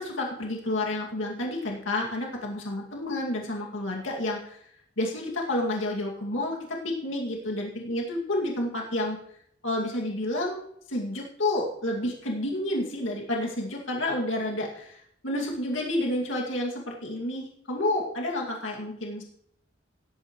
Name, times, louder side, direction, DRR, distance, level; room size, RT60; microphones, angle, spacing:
voice 1, 0.0-4.6 5.0-9.2 9.6-10.6 10.9-19.2, left 1 dB, 85° left, -1 dB, 2.3 m, -30 dB
18.0 x 8.6 x 3.1 m, 0.70 s
head